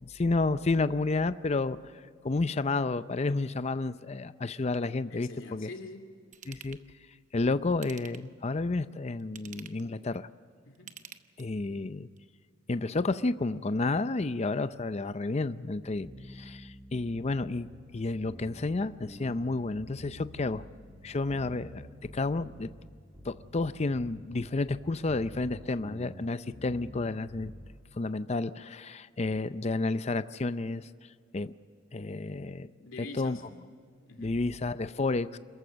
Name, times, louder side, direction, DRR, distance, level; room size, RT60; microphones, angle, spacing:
voice 1, 0.0-1.8 2.2-5.7 6.5-6.8 7.3-10.3 11.4-12.1 12.7-17.7 17.9-20.6 21.0-21.9 22.1-22.7 23.2-27.5 28.0-30.9 31.3-31.5 31.9-32.7 33.1-33.4 34.2-35.4, left 3 dB, 30° left, 0.5 m, -31 dB
voice 2, 5.1-6.1 10.7-11.0 32.8-33.4 34.0-34.4, left 2 dB, 75° left, 2.5 m, -45 dB
Ratchet pawl / Tools, 6.3-6.8 7.7-8.4 9.2-9.9 10.7-11.7 12.2-12.3, right 8 dB, 40° right, 0.9 m, -49 dB
sound 1, 16.0-27.8, equal, 10° right, 2.0 m, -49 dB
27.0 x 14.5 x 7.4 m
head